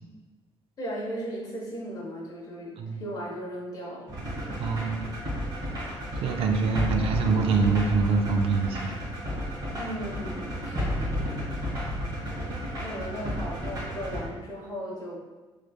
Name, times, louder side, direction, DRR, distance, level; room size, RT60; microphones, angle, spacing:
voice 1, 0.8-4.2 9.7-11.5 12.4-15.2, equal, 40° left, -4 dB, 0.9 m, -37 dB
sound 1, 4.1-14.3, equal, 40° right, 1.3 m, -32 dB
voice 2, 4.6-5.1 6.2-8.9, right 4 dB, 70° right, 4 dB, 0.4 m, -25 dB
3.2 x 3.1 x 2.2 m, 1.3 s
cardioid pair, 145°, 10 cm